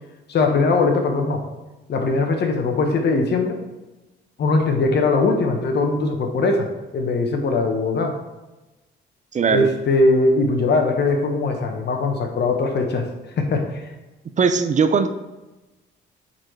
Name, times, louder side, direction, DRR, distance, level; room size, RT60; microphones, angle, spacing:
voice 1, 0.3-1.4 1.9-3.6 4.4-6.7 6.9-8.1 9.5-13.1 13.4-13.9, left 3 dB, 60° left, 4 dB, 1.1 m, -20 dB
voice 2, 9.3-9.7 14.4-15.1, right 5 dB, 40° right, 9 dB, 0.5 m, -19 dB
9.0 x 4.2 x 3.3 m, 1.1 s
cardioid pair, 90°, 20 cm